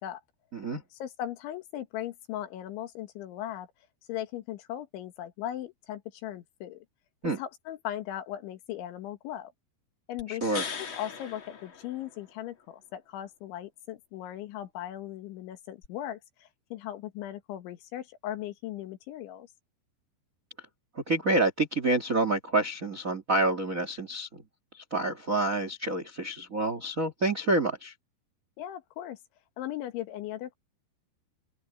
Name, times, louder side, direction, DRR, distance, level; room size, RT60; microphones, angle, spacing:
voice 1, 0.9-3.7 4.1-6.9 7.4-9.5 10.1-19.5 28.6-29.2 29.6-30.5, left 12 dB, 85° left, 4.1 m, -38 dB
sound 1, 10.2-12.5 15.8-15.9, left 6 dB, 40° left, 2.0 m, -40 dB
voice 2, 10.3-10.6 21.1-24.4 24.9-27.9, right 2 dB, 65° right, 0.8 m, -28 dB
open air
omnidirectional pair, 5.2 m